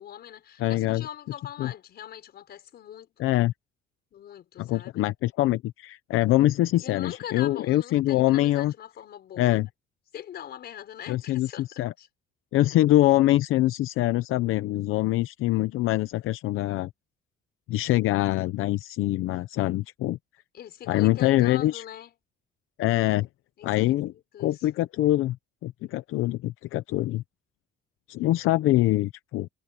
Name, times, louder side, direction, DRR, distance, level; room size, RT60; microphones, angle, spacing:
voice 1, 0.0-3.2 4.1-5.1 6.8-9.6 10.1-12.1 20.5-22.1 23.6-24.7, left 10 dB, 50° left, 6.1 m, -42 dB
voice 2, 0.6-1.1 1.6-1.7 3.2-3.5 4.6-8.7 9.4-9.7 11.1-11.9 12.5-16.9 17.7-20.2 20.9-21.8 22.8-23.3 23.6-24.1 24.4-25.4 25.6-27.2 28.1-29.5, left 15 dB, 85° left, 0.7 m, -24 dB
cardioid pair, 180°, 21 cm